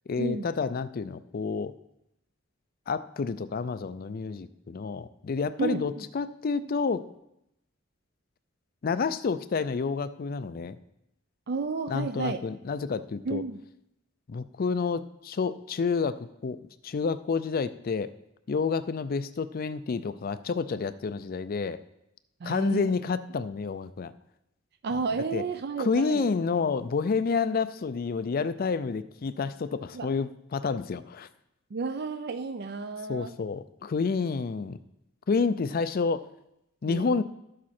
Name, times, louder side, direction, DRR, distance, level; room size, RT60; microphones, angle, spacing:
voice 1, 0.1-1.7 2.9-7.1 8.8-10.8 11.9-13.4 14.3-18.1 18.5-21.8 22.4-24.1 25.3-25.4 25.8-31.3 33.1-34.8 35.3-36.2 36.8-37.2, left 5 dB, 45° left, 14 dB, 0.4 m, -29 dB
voice 2, 5.6-6.0 11.5-12.4 13.3-13.6 22.4-22.9 24.8-26.3 29.9-30.1 31.7-33.3 36.9-37.2, right 4 dB, 55° right, 9 dB, 0.5 m, -32 dB
12.0 x 7.5 x 4.3 m, 0.84 s
head